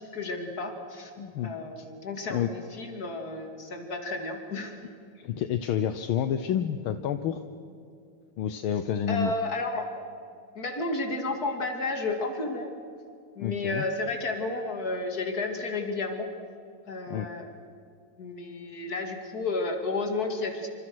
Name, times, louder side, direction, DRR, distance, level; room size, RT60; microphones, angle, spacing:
voice 1, 0.0-1.1 1.4-4.8 9.1-9.9 10.5-12.7 13.4-16.3 16.8-17.5 18.2-20.7, left 3 dB, 45° left, 4 dB, 3.1 m, -32 dB
voice 2, 1.2-1.8 2.3-2.5 5.1-7.4 8.4-9.3 13.4-13.9 17.1-17.3, left 9 dB, 75° left, 9 dB, 1.7 m, -29 dB
27.0 x 26.5 x 6.3 m, 2.5 s
omnidirectional pair, 2.4 m